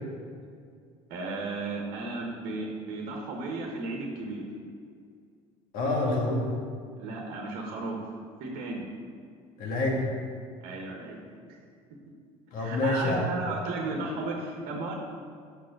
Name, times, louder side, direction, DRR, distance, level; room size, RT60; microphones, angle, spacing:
voice 1, 1.1-4.5 7.0-8.0 8.4-8.8 10.6-11.2 11.5-11.6 12.6-14.9, right 3 dB, 60° right, 0 dB, 1.5 m, -34 dB
voice 2, 5.7-6.5 9.6-10.0 12.5-13.3, left 2 dB, 60° left, -1 dB, 2.0 m, -27 dB
6.5 x 5.9 x 6.0 m, 2.2 s
supercardioid pair, 85°, 16 cm